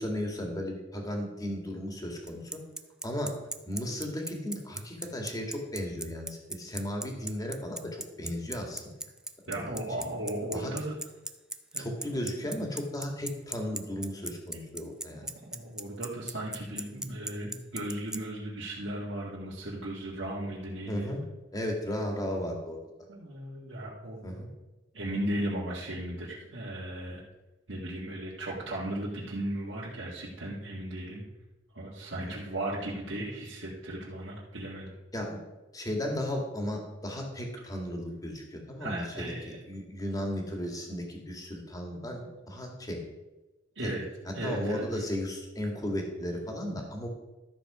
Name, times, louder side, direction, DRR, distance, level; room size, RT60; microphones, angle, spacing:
voice 1, 0.0-2.6 3.0-3.3 3.6-8.8 9.5-9.8 10.5-10.7 11.8-15.2 20.9-21.2 21.5-22.8 24.2-24.5 35.1-35.4 35.7-39.3 39.7-42.2 42.5-43.0 43.8-43.9 44.4-47.1, left 1 dB, 20° left, 2 dB, 2.0 m, -35 dB
Bicycle, 2.3-18.2, right 2 dB, 5° right, 0.4 m, -36 dB
voice 2, 9.5-11.0 11.7-11.9 15.5-21.1 23.1-24.3 24.9-27.2 27.7-31.2 31.7-34.9 38.8-39.6 41.9-42.3 43.8-44.0 44.3-45.0, right 1 dB, 75° right, -7 dB, 2.0 m, -36 dB
13.0 x 7.0 x 4.9 m, 1.1 s
head